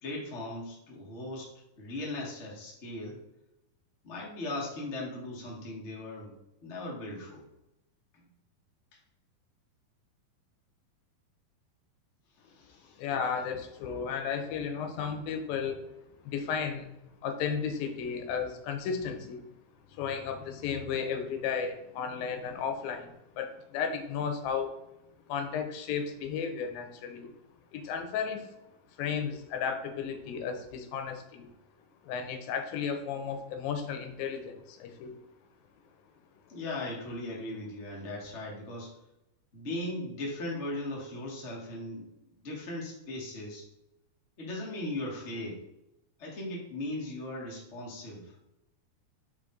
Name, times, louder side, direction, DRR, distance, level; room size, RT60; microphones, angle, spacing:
voice 1, 0.0-3.2 4.0-6.3 6.6-7.4 12.4-13.0 36.5-39.0 39.5-43.7 44.4-45.6 46.2-48.3, left 1 dB, 60° left, -3 dB, 0.7 m, -38 dB
voice 2, 13.0-15.8 16.2-16.9 17.2-19.5 19.9-24.7 25.3-27.3 27.7-28.5 29.0-31.5 32.0-35.2, left 6 dB, 90° left, 6 dB, 2.6 m, -34 dB
4.9 x 4.9 x 3.8 m, 0.89 s
omnidirectional pair, 4.0 m